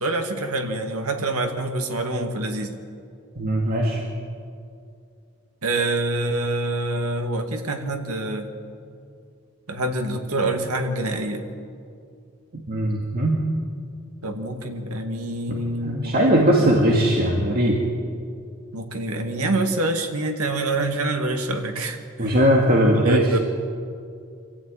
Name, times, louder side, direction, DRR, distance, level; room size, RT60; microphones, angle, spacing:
voice 1, 0.0-2.8 5.6-8.5 9.7-11.5 14.2-17.1 18.7-22.4 22.9-23.4, right 2 dB, 90° right, 4 dB, 2.2 m, -26 dB
voice 2, 3.4-4.0 12.7-13.4 15.5-15.6 15.8-17.8 22.2-23.4, equal, 45° right, -1 dB, 2.2 m, -19 dB
25.5 x 14.5 x 9.0 m, 2.4 s
head